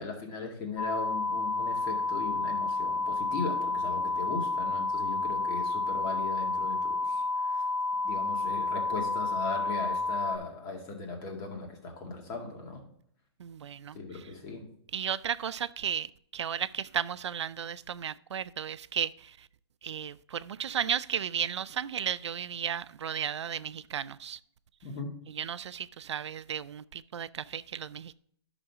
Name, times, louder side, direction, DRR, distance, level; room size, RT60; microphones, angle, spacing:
voice 1, 0.0-7.6 8.0-12.8 13.9-14.6 24.8-25.1, left 4 dB, 25° left, 2.1 m, -38 dB
sound 1, 0.8-10.4, left 3 dB, 75° left, 3.1 m, -30 dB
voice 2, 13.4-14.0 14.9-19.3 19.8-24.4 25.3-28.1, right 8 dB, 85° right, 0.4 m, -34 dB
11.0 x 6.3 x 3.6 m
hypercardioid pair, 155°, 14 cm